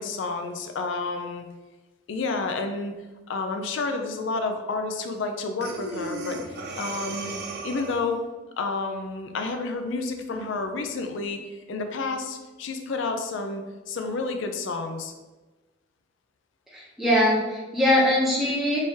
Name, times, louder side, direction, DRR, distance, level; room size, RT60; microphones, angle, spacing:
voice 1, 0.0-1.5 2.1-2.9 3.3-6.4 6.8-7.4 7.6-8.2 8.6-11.4 11.7-15.1, left 3 dB, 65° left, 5 dB, 0.4 m, -30 dB
Breathing, 5.6-8.2, right 3 dB, 55° right, 0.4 m, -35 dB
voice 2, 16.7-18.8, left 1 dB, ahead, -6 dB, 0.6 m, -22 dB
3.4 x 3.2 x 2.7 m, 1.2 s
head